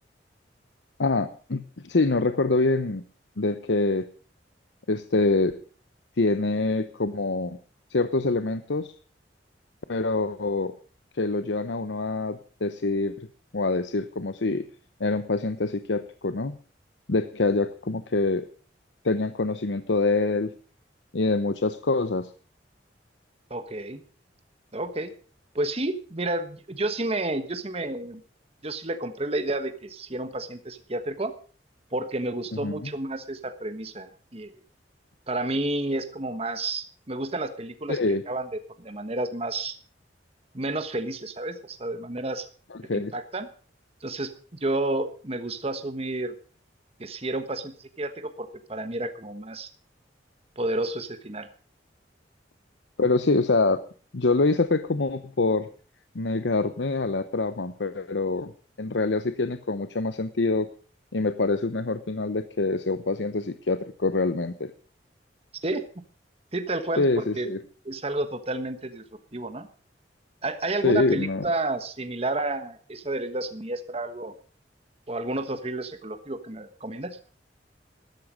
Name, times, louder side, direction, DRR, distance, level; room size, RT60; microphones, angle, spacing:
voice 1, 1.0-3.0 3.4-4.1 4.9-5.6 6.2-7.6 7.9-8.9 9.9-10.7 11.1-13.3 13.5-14.6 15.0-16.6 17.1-18.5 19.0-20.5 21.1-22.3 32.6-32.9 37.9-38.2 42.7-43.1 53.0-53.8 54.1-55.7 56.1-58.5 58.8-60.7 61.1-64.7 67.0-67.6 70.8-71.4, left 3 dB, 85° left, 11 dB, 0.9 m, -25 dB
voice 2, 23.5-24.0 24.7-25.1 25.5-28.2 28.6-31.3 31.9-34.5 35.3-38.0 38.3-38.5 38.8-39.7 40.5-42.5 42.9-43.5 44.0-44.3 44.6-46.3 47.0-49.7 50.6-51.5 65.6-65.8 66.5-67.5 67.8-69.0 69.3-69.7 70.4-74.3 75.1-77.2, right 2 dB, 35° right, 9 dB, 1.3 m, -30 dB
13.5 x 13.0 x 5.1 m, 0.41 s
head